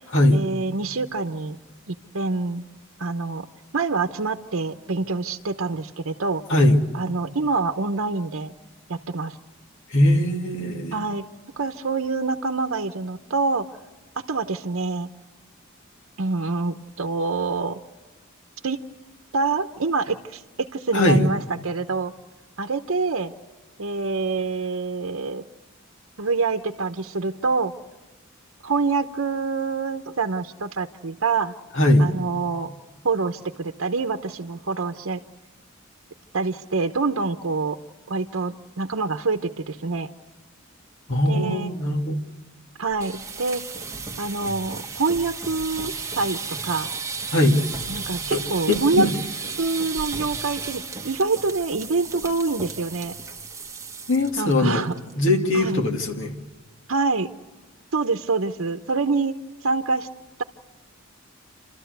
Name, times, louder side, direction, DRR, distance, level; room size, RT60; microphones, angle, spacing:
voice 1, 0.3-1.6 1.9-2.6 3.0-3.5 3.7-6.4 6.9-8.5 8.9-9.4 10.9-11.3 11.6-13.7 14.3-15.1 16.2-17.8 18.6-18.8 19.3-22.1 22.6-23.3 23.8-25.4 26.2-27.7 28.6-31.5 32.0-32.7 33.0-35.2 36.3-37.8 38.1-40.1 41.3-41.7 42.8-43.6 44.2-46.9 47.9-49.1 49.6-53.1 54.4-55.0 55.5-55.8 56.9-57.3 57.9-59.3 59.6-60.1, right 4 dB, 70° right, 7 dB, 0.9 m, -26 dB
voice 2, 9.9-11.0 20.9-21.2 31.7-32.0 41.1-42.2 47.3-47.6 48.3-48.4 48.7-49.1 54.1-54.8 55.2-56.4, left 1 dB, 65° left, 2 dB, 2.4 m, -20 dB
sound 1, 42.9-54.5 54.8-55.1 55.4-55.5 55.9-56.3, right 4 dB, 15° right, 1.2 m, -34 dB
30.0 x 13.0 x 8.1 m, 1.4 s
head